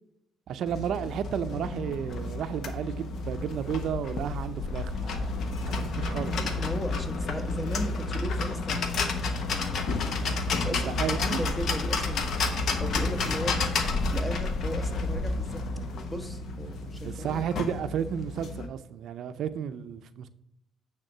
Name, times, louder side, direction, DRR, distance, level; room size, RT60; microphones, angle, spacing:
voice 1, 0.5-6.4 10.7-11.4 17.0-20.3, right 8 dB, 75° right, 0.5 m, -33 dB
sound 1, 0.7-18.7, left 3 dB, 65° left, 1.0 m, -30 dB
voice 2, 6.4-10.1 10.5-12.2 12.8-13.6 14.1-15.6 16.1-17.4, equal, 15° left, 1.1 m, -37 dB
9.0 x 3.6 x 6.5 m
cardioid pair, 90°, 0 cm